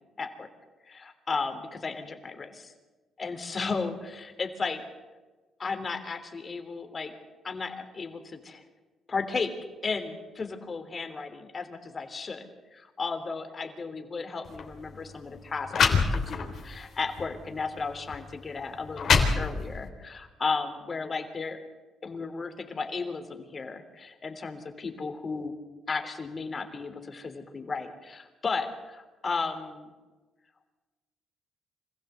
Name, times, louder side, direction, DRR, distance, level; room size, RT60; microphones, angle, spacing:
voice 1, 0.2-0.5 0.8-2.7 3.2-4.8 5.6-7.1 7.4-8.6 9.1-9.5 9.8-21.6 22.0-25.5 25.9-29.9, left 4 dB, 35° left, 7 dB, 3.3 m, -34 dB
sound 1, 14.4-14.6 15.4-15.5 15.7-16.6 17.2-17.3 18.1-18.2 18.7-19.9, left 5 dB, 60° left, 3.5 m, -24 dB
26.0 x 16.0 x 8.2 m, 1.3 s
cardioid pair, 90°, 0 cm